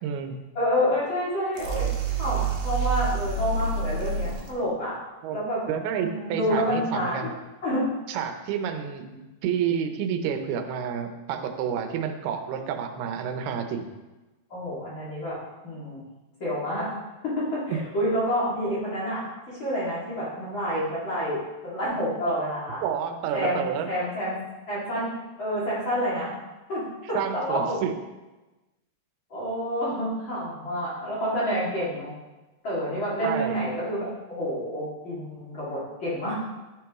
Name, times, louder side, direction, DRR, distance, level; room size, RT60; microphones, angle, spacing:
voice 1, 0.0-0.3 5.2-5.4 5.7-7.3 8.1-9.1 9.4-13.9 17.7-17.8 22.8-23.9 27.1-27.9 33.2-33.6, right 8 dB, 85° right, 6 dB, 2.7 m, -29 dB
voice 2, 0.5-1.9 2.2-4.9 5.3-5.6 5.9-7.3 7.6-7.9 9.1-9.2 14.5-15.4 15.6-16.0 16.4-16.9 17.2-22.8 23.3-24.4 24.7-26.3 26.7-27.8 29.3-32.1 32.6-36.3, equal, 40° left, -8 dB, 2.3 m, -28 dB
sound 1, 1.5-4.5, right 4 dB, 65° right, 2.1 m, -28 dB
10.5 x 6.1 x 3.6 m, 1.1 s
omnidirectional pair, 4.4 m